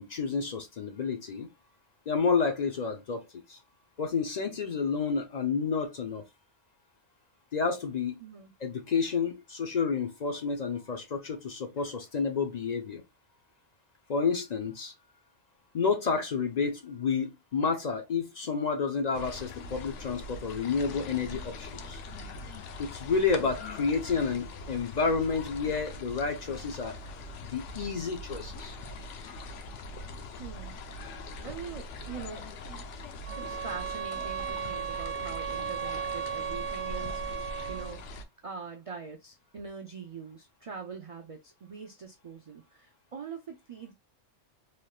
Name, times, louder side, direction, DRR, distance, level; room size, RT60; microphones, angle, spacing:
voice 1, 0.0-1.5 2.1-3.6 4.0-6.2 7.5-8.1 8.6-13.0 14.1-14.9 15.7-22.0 22.8-27.0 27.5-28.8, left 5 dB, 50° left, 0.5 m, -30 dB
voice 2, 8.2-8.5 11.8-11.9 30.4-30.8 31.4-32.5 33.4-38.0 38.4-43.9, right 6 dB, 60° right, 0.3 m, -43 dB
sound 1, 19.1-38.2, left 2 dB, 85° left, 1.0 m, -42 dB
sound 2, 33.3-38.0, right 8 dB, 80° right, 0.9 m, -35 dB
3.2 x 2.8 x 2.3 m
omnidirectional pair, 1.2 m